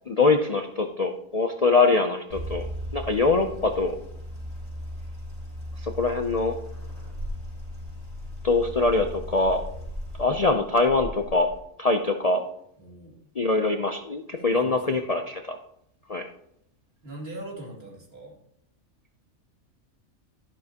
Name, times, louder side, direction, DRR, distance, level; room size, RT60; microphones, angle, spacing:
voice 1, 0.1-4.0 5.8-6.6 8.4-9.6 10.2-11.5 11.8-12.5 13.4-15.6 16.1-16.3, left 3 dB, 50° left, 4 dB, 0.4 m, -23 dB
sound 1, 2.3-11.6, equal, 65° right, 4.9 m, -37 dB
voice 2, 12.8-13.3 14.4-15.0 17.0-18.4, right 1 dB, 45° right, -2 dB, 2.7 m, -41 dB
12.0 x 11.0 x 2.9 m, 0.73 s
omnidirectional pair, 1.4 m